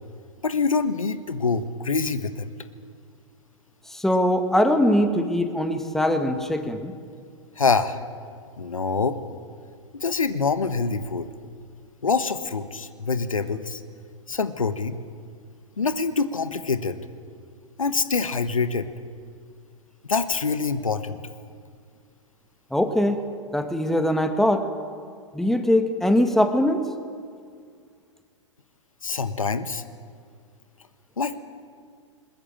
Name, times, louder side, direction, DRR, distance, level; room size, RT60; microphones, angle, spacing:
voice 1, 0.4-2.5 7.6-8.0 8.6-9.2 10.0-11.3 12.0-13.8 14.3-15.0 15.8-17.0 17.8-18.9 20.1-21.2 29.0-29.8 31.2-31.4, left 4 dB, 90° left, 11 dB, 1.4 m, -25 dB
voice 2, 3.9-6.9 22.7-23.2 23.5-24.7 25.3-26.8, left 1 dB, ahead, 6 dB, 1.7 m, -22 dB
21.0 x 20.5 x 8.9 m, 2.1 s
hypercardioid pair, 115°, 17 cm